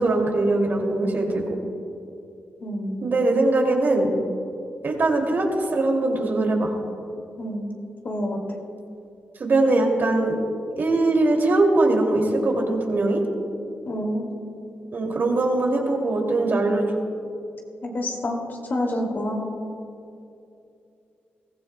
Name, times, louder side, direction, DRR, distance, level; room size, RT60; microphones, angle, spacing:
voice 1, 0.0-1.4 3.0-4.1 4.8-6.7 9.4-10.4 10.8-13.2 14.9-16.8, right 2 dB, 55° right, 1 dB, 2.5 m, -21 dB
voice 2, 2.6-3.2 7.4-7.7 8.0-8.4 13.9-14.3 17.8-18.4 18.7-19.5, left 1 dB, 50° left, 1 dB, 2.4 m, -28 dB
22.0 x 15.5 x 2.2 m, 2.7 s
cardioid pair, 75°, 4 cm